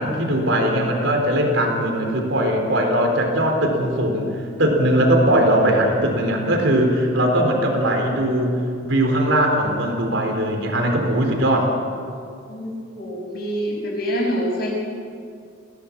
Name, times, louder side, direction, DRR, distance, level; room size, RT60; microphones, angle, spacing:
voice 1, 0.0-11.7, right 1 dB, 75° right, 3 dB, 3.9 m, -20 dB
voice 2, 12.5-14.7, equal, 50° left, -2 dB, 6.6 m, -26 dB
22.0 x 17.0 x 7.4 m, 2.3 s
head